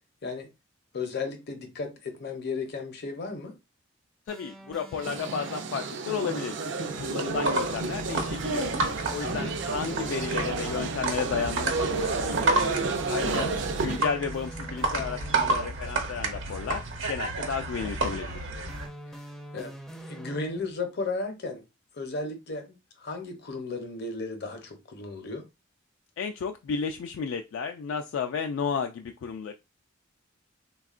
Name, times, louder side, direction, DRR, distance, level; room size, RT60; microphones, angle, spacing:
voice 1, 0.9-3.6 9.2-9.5 13.2-13.5 19.1-19.2 19.5-21.6 21.9-25.5, left 3 dB, 55° left, 0.7 m, -35 dB
voice 2, 4.3-8.7 9.1-12.6 13.1-13.5 13.8-18.4 26.2-29.5, left 6 dB, 75° left, 0.3 m, -33 dB
sound 1, 4.3-6.1 9.1-11.0 13.9-15.8 18.7-20.9, right 1 dB, 5° left, 0.4 m, -45 dB
sound 2, 4.9-14.1, right 3 dB, 60° right, 0.4 m, -31 dB
sound 3, 7.2-18.9, right 2 dB, 85° right, 0.9 m, -31 dB
3.5 x 2.2 x 2.4 m
head